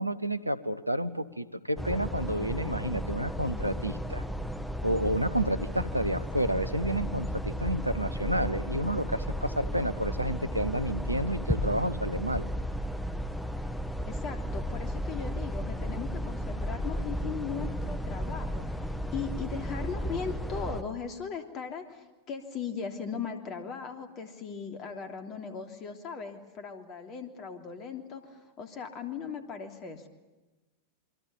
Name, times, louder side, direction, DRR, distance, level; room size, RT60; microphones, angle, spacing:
voice 1, 0.0-4.2 4.8-12.4, right 1 dB, 85° right, 13 dB, 1.0 m, -30 dB
sound 1, 1.8-20.8, equal, 5° left, 1.8 m, -34 dB
voice 2, 14.1-30.1, left 6 dB, 35° left, 6 dB, 3.2 m, -38 dB
27.5 x 24.0 x 7.1 m, 1.1 s
figure-of-eight pair, 90°, 0 cm